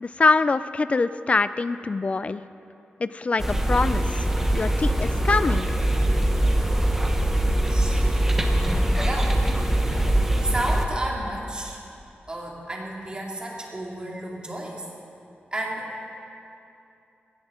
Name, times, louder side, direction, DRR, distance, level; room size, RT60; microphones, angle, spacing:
voice 1, 0.0-2.4 3.0-4.1 4.5-5.7, left 3 dB, 35° left, 14 dB, 0.4 m, -23 dB
sound 1, 3.4-10.9, right 1 dB, 10° right, 1.1 m, -22 dB
voice 2, 7.7-8.0 8.9-9.4 10.5-11.8 12.3-14.8 15.5-15.9, right 1 dB, 25° right, -2 dB, 2.3 m, -32 dB
21.0 x 16.5 x 3.8 m, 2.8 s
wide cardioid pair, 155°, 4 cm